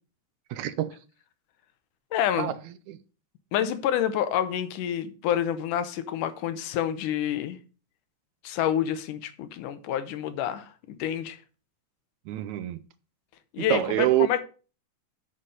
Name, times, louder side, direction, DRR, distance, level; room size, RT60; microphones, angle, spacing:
voice 1, 0.5-0.9 2.4-2.5 2.9-3.0 12.3-12.8 13.6-14.3, right 12 dB, 75° right, 1.8 m, -26 dB
voice 2, 2.1-2.5 3.5-7.6 8.4-11.4 13.5-14.4, left 10 dB, 90° left, 2.5 m, -28 dB
8.1 x 5.7 x 6.6 m
omnidirectional pair, 3.6 m